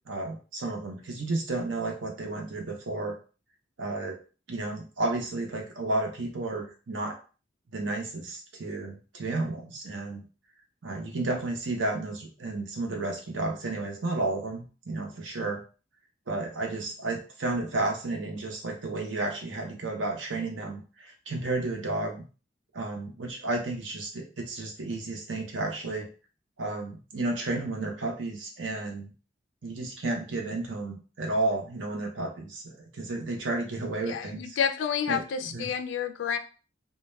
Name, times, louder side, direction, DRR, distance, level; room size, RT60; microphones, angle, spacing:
voice 1, 0.1-3.2 3.8-4.2 4.5-7.1 7.7-10.2 10.8-15.6 16.3-22.2 22.7-26.1 26.6-29.1 29.6-34.6 35.1-35.2 35.5-35.7, right 2 dB, 85° right, 2 dB, 0.7 m, -32 dB
voice 2, 34.0-36.4, left 7 dB, 80° left, 8 dB, 0.3 m, -29 dB
2.2 x 2.1 x 3.1 m, 0.36 s
head